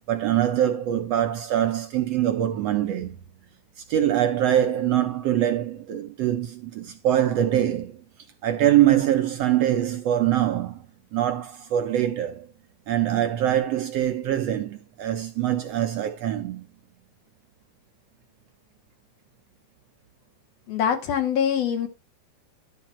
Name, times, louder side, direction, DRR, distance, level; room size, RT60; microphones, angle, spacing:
voice 1, 0.1-3.2 3.9-8.0 8.4-10.8 11.1-12.5 12.9-16.7, right 11 dB, 70° right, 1.6 m, -23 dB
voice 2, 20.7-21.9, left 8 dB, 65° left, 1.9 m, -24 dB
11.5 x 6.6 x 4.4 m
omnidirectional pair, 3.5 m